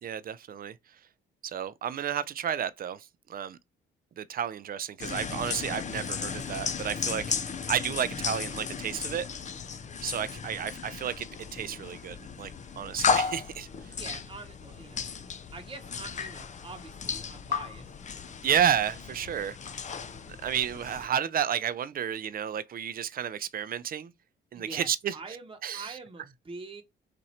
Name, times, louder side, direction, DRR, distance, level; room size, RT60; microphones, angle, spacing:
voice 1, 0.0-0.8 1.4-3.6 4.2-9.3 10.0-13.9 18.4-19.6 20.3-24.1 24.5-25.1 25.6-25.9, right 9 dB, 45° right, 0.5 m, -31 dB
sound 1, 5.0-21.1, left 6 dB, 35° left, 0.6 m, -35 dB
voice 2, 14.0-15.0 15.5-17.9 24.5-26.8, right 3 dB, 25° right, 1.0 m, -45 dB
4.2 x 2.6 x 4.2 m
cardioid pair, 90°, 20 cm